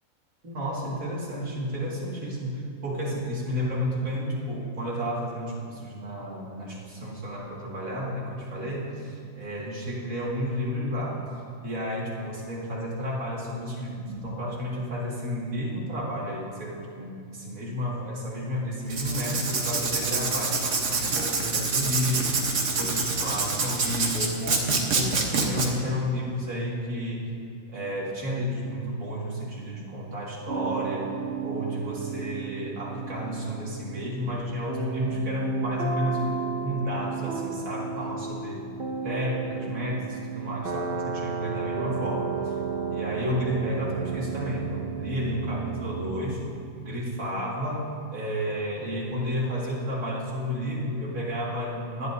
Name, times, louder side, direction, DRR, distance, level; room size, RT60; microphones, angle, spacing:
voice 1, 0.4-11.3 11.6-27.2 27.7-31.1 31.4-36.4 36.6-38.7 39.0-42.5 42.9-46.4 46.8-52.1, equal, 80° right, -5 dB, 2.7 m, -31 dB
Writing, 18.9-25.7, right 4 dB, 65° right, 1.5 m, -26 dB
sound 1, 30.5-46.3, right 6 dB, 45° right, 1.0 m, -33 dB
19.0 x 11.0 x 2.7 m, 2.4 s
omnidirectional pair, 1.4 m